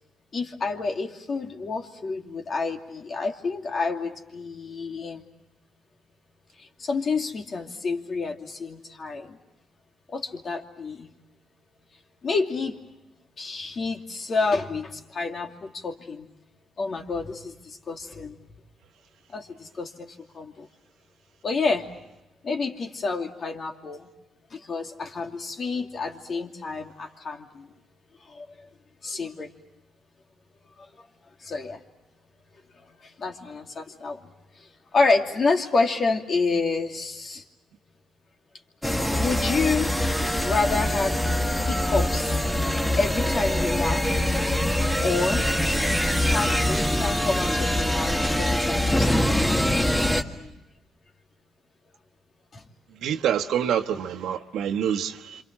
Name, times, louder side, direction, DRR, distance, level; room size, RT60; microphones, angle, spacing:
voice 1, 0.3-5.3 6.6-9.4 10.1-11.1 12.2-12.8 13.4-16.3 16.8-18.4 19.3-20.7 21.4-21.9 22.4-24.1 24.5-27.7 28.2-28.7 29.0-29.5 30.8-30.9 31.4-31.8 32.8-34.2 34.6-37.4 39.1-39.9 40.4-41.2 41.6-42.5 43.0-44.3 45.0-45.5 46.3-49.9 50.3-50.5 52.5-52.6, left 4 dB, 45° left, 3 dB, 2.7 m, -29 dB
sound 1, 38.8-50.2, left 1 dB, 5° left, 1.8 m, -24 dB
voice 2, 53.0-55.4, right 9 dB, 80° right, 7 dB, 1.3 m, -26 dB
27.5 x 26.5 x 7.5 m, 0.96 s
cardioid pair, 90°, 0 cm